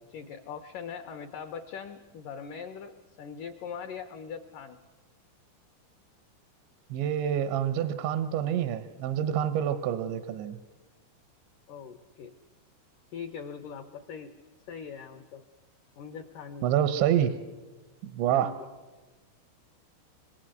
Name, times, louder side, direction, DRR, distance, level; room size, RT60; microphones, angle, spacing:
voice 1, 0.1-4.8 11.7-12.3 13.1-14.3 14.7-15.5 16.0-16.7 18.3-18.7, left 6 dB, 80° left, 6 dB, 1.9 m, -41 dB
voice 2, 6.9-10.6 16.6-17.3 18.0-18.5, right 10 dB, 85° right, 10 dB, 3.2 m, -27 dB
26.0 x 22.0 x 7.9 m, 1.2 s
omnidirectional pair, 5.2 m